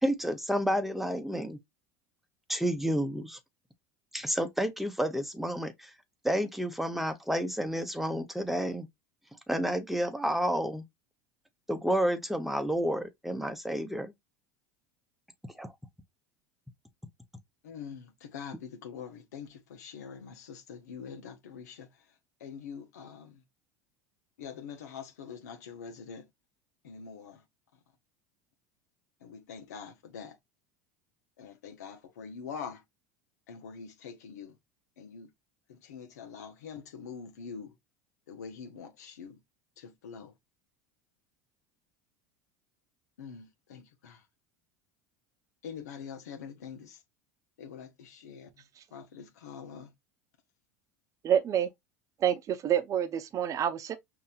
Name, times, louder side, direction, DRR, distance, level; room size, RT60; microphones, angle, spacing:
voice 1, 0.0-1.6 2.5-3.4 4.1-5.9 6.2-8.9 9.5-10.8 11.7-14.1 15.6-15.7, equal, ahead, 0.9 m, -30 dB
voice 2, 17.6-21.9 22.4-23.4 24.4-26.2 26.8-27.4 29.2-30.3 31.4-32.8 33.5-34.5 35.0-35.3 35.7-37.7 38.3-39.4 39.8-40.3 43.2-44.2 45.6-47.0 47.6-48.5 48.9-49.9, left 6 dB, 85° left, 0.9 m, -44 dB
voice 3, 51.2-51.7 52.2-54.0, right 9 dB, 40° right, 0.8 m, -27 dB
5.4 x 2.8 x 2.4 m
hypercardioid pair, 90°, 9 cm